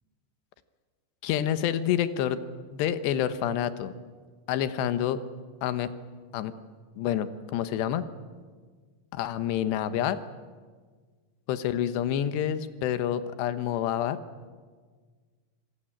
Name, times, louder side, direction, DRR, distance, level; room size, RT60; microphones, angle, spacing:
voice 1, 1.2-2.4 2.7-3.9 4.5-5.2 5.6-5.9 6.3-6.5 7.0-8.0 9.1-10.2 11.5-14.2, left 10 dB, 75° left, 11 dB, 3.2 m, -28 dB
26.5 x 24.0 x 8.8 m, 1.5 s
omnidirectional pair, 5.1 m